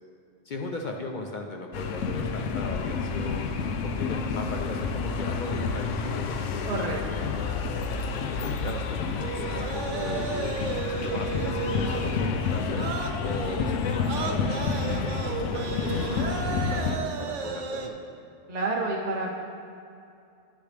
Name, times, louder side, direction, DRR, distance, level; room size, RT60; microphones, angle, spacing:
voice 1, 0.4-3.5 3.8-7.6 8.1-10.6 10.9-12.9 13.2-17.9, left 2 dB, 55° left, 2 dB, 0.6 m, -37 dB
sound 1, 1.7-17.0, left 5 dB, 85° left, 0.9 m, -29 dB
voice 2, 6.7-7.3 18.5-19.3, right 2 dB, 45° right, -1 dB, 0.6 m, -29 dB
sound 2, 9.2-17.9, right 5 dB, 80° right, 1.0 m, -34 dB
10.0 x 6.7 x 3.3 m, 2.6 s
omnidirectional pair, 1.2 m